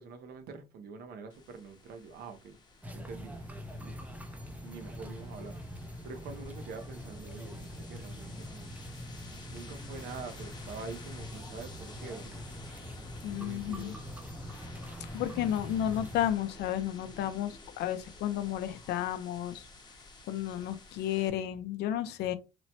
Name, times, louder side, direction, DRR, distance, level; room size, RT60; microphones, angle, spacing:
voice 1, 0.0-2.6 2.9-3.4 3.8-4.1 4.6-5.6 6.0-8.7 9.5-12.5 13.2-14.0, right 4 dB, 65° right, 0.7 m, -45 dB
sound 1, 1.3-21.3, left 3 dB, 25° left, 0.7 m, -52 dB
sound 2, 2.8-16.3, equal, 10° right, 0.4 m, -44 dB
voice 2, 13.2-13.9 15.1-19.7 20.3-22.3, left 11 dB, 80° left, 0.5 m, -32 dB
3.0 x 2.1 x 2.7 m
cardioid pair, 110°, 17 cm